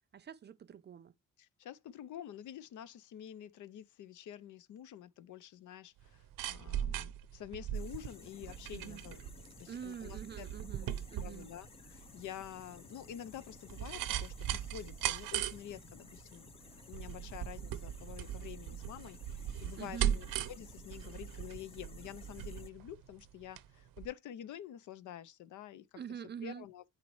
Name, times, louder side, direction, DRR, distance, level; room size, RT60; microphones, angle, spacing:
voice 1, 0.1-1.1 8.7-9.0 9.7-11.5 19.8-20.2 26.0-26.6, right 8 dB, 35° right, 0.5 m, -46 dB
voice 2, 1.4-9.2 9.6-10.5 11.2-16.5 16.9-26.0 26.4-26.8, left 10 dB, 65° left, 0.7 m, -48 dB
sound 1, 6.0-23.7 24.0-24.1, right 11 dB, 80° right, 0.8 m, -39 dB
sound 2, 7.7-22.7, left 5 dB, 20° left, 0.4 m, -56 dB
9.8 x 4.2 x 3.1 m
cardioid pair, 125°, 33 cm